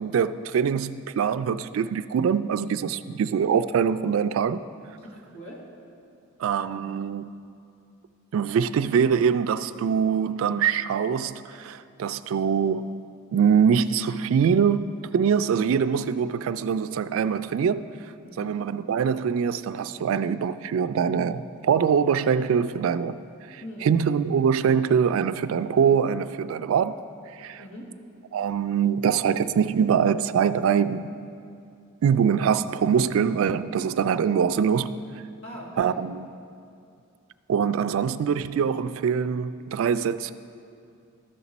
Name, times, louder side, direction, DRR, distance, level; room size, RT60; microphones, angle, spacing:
voice 1, 0.0-4.6 6.4-7.4 8.3-13.0 13.3-17.9 18.4-23.2 23.5-27.0 27.3-27.6 28.3-31.1 32.0-34.9 35.8-36.3 37.5-40.3, right 7 dB, 75° right, 0.3 m, -23 dB
voice 2, 5.0-5.6 18.2-18.6 23.6-24.1 27.6-27.9 35.4-36.0, equal, 65° left, 1.9 m, -41 dB
13.0 x 6.0 x 4.1 m
head